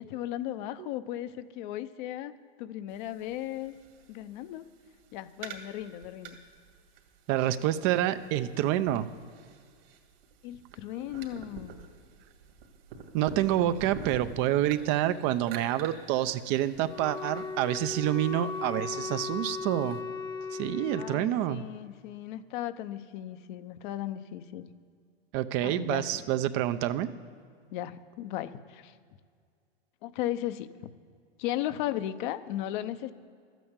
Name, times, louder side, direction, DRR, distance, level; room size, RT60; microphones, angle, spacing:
voice 1, 0.0-2.3 2.6-3.7 4.1-4.6 5.1-6.4 10.4-11.8 20.9-24.7 25.6-26.2 27.7-29.0 30.0-30.9 31.4-33.1, left 13 dB, 50° left, 11 dB, 0.8 m, -36 dB
sound 1, 2.9-20.0, right 5 dB, 65° right, 2.3 m, -48 dB
voice 2, 7.3-9.1 13.1-20.0 20.5-21.6 25.3-27.1, right 12 dB, 40° right, 12 dB, 0.6 m, -28 dB
Wind instrument woodwind instrument, 16.8-21.2, left 5 dB, 10° left, 0.8 m, -37 dB
12.5 x 9.2 x 8.1 m, 2.1 s
hypercardioid pair, 125°, 31 cm